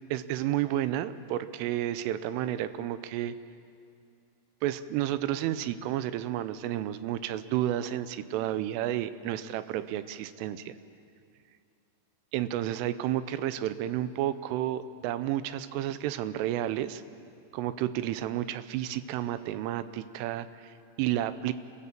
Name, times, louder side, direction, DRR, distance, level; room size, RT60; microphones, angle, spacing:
voice 1, 0.1-3.3 4.6-10.8 12.3-17.0 17.5-21.5, right 12 dB, 85° right, 13 dB, 3.2 m, -31 dB
29.5 x 15.0 x 7.4 m, 2.4 s
omnidirectional pair, 5.8 m